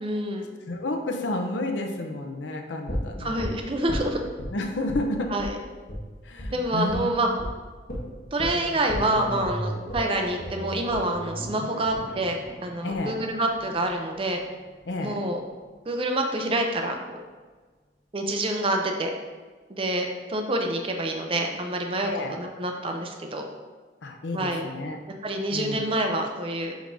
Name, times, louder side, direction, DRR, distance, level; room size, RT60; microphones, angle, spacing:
voice 1, 0.0-0.5 3.2-4.2 5.3-5.6 6.5-7.3 8.3-12.4 12.6-14.4 15.0-15.4 15.9-17.2 18.1-19.1 19.7-23.4 24.3-24.7 25.2-26.7, right 1 dB, 30° right, 3 dB, 0.5 m, -27 dB
voice 2, 0.7-3.4 4.5-5.3 6.2-7.3 12.8-13.2 14.9-15.2 22.0-22.4 24.0-25.0 25.5-25.9, left 2 dB, 85° left, 3 dB, 0.7 m, -31 dB
sound 1, 2.9-4.5 4.9-5.1 5.4-5.5 5.9-6.0 6.4-6.5 6.9-7.1 7.4-7.5 7.9-13.9 14.2-14.3, equal, 55° left, 1.3 m, -35 dB
7.7 x 5.1 x 2.6 m, 1.4 s
head